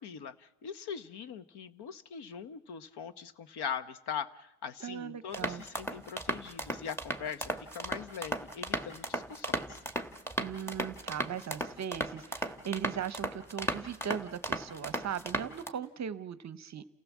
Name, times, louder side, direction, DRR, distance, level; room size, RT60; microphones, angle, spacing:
voice 1, 0.0-9.8, left 7 dB, 55° left, 14 dB, 1.1 m, -41 dB
voice 2, 4.8-5.6 10.4-16.8, right 8 dB, 35° right, 15 dB, 0.8 m, -38 dB
sound 1, 5.3-15.7, right 1 dB, 5° left, 1.3 m, -36 dB
29.0 x 15.5 x 7.3 m, 0.86 s
cardioid pair, 110°, 47 cm